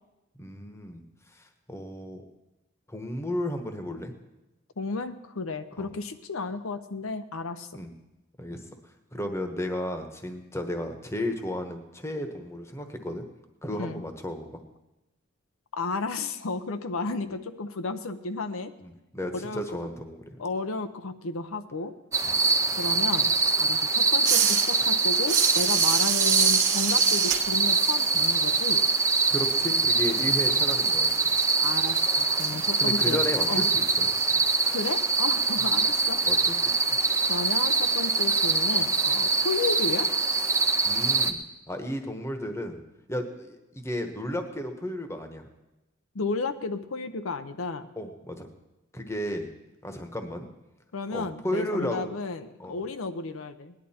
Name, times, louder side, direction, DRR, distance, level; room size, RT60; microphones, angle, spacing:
voice 1, 0.4-2.2 2.9-4.1 5.8-5.9 7.7-7.9 8.4-8.6 9.1-13.2 13.6-14.6 18.8-20.4 22.2-22.6 29.3-31.3 32.5-34.2 36.2-37.0 40.9-41.4 41.7-42.8 43.1-45.5 48.0-48.5 48.9-49.5 49.8-50.5 51.1-52.1 52.6-52.7, left 1 dB, 15° left, 6 dB, 1.1 m, -34 dB
voice 2, 4.8-7.8 13.7-14.0 15.7-18.7 19.3-19.6 20.4-21.9 22.4-22.5 22.8-23.3 23.6-28.8 31.6-33.2 33.5-33.7 34.6-36.2 37.3-40.1 46.1-47.9 50.9-53.7, left 3 dB, 75° left, 9 dB, 0.7 m, -33 dB
sound 1, 22.1-41.3, right 4 dB, 15° right, 0.6 m, -24 dB
sound 2, 24.2-29.8 30.0-34.9, right 8 dB, 55° right, 1.3 m, -29 dB
18.5 x 10.5 x 4.3 m, 0.99 s
head